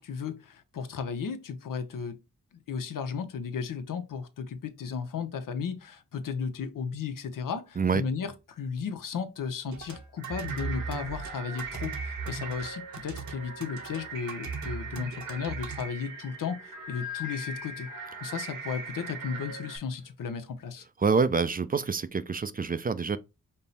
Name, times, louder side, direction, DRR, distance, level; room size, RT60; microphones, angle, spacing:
voice 1, 0.0-2.2 2.5-17.9 18.2-20.8, left 6 dB, 85° left, 0.7 m, -35 dB
sound 1, 9.6-15.8, right 4 dB, 65° right, 0.8 m, -38 dB
sound 2, 10.2-19.8, right 3 dB, 90° right, 1.4 m, -40 dB
voice 2, 21.0-23.2, right 5 dB, 30° right, 0.4 m, -26 dB
5.3 x 2.0 x 4.0 m
cardioid pair, 70°, 31 cm